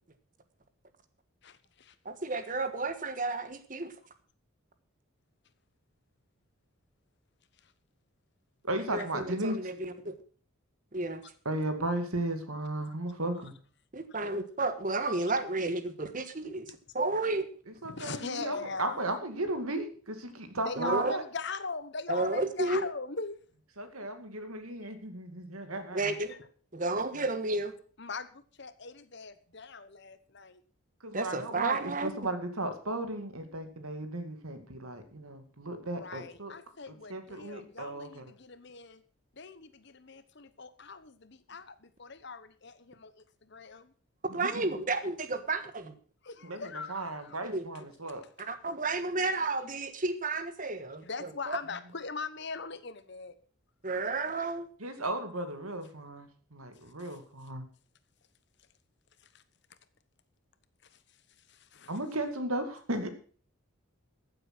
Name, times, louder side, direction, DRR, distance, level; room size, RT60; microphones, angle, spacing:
voice 1, 1.4-2.0 7.6-7.7 13.3-13.5 16.7-16.8 17.8-19.1 20.6-23.4 23.8-23.9 26.3-26.4 28.0-30.6 36.0-39.0 39.3-43.9 46.2-47.4 51.0-53.3 54.1-54.2 57.0-57.2 59.2-59.4 60.8-62.0, left 4 dB, 55° left, 13 dB, 1.1 m, -41 dB
voice 2, 2.0-3.9 8.8-10.1 10.9-11.2 13.9-17.5 20.7-21.1 22.1-22.9 25.9-26.3 26.7-27.7 31.1-32.1 44.3-46.0 47.4-47.7 48.4-51.6 53.8-54.7, right 3 dB, 40° right, 10 dB, 1.4 m, -32 dB
voice 3, 8.6-9.6 11.5-13.5 17.8-21.2 23.8-26.1 31.0-36.5 37.1-38.2 44.5-44.7 46.4-48.2 54.8-57.7 61.9-63.1, right 2 dB, 90° right, 8 dB, 2.3 m, -35 dB
14.5 x 7.9 x 6.1 m, 0.43 s
head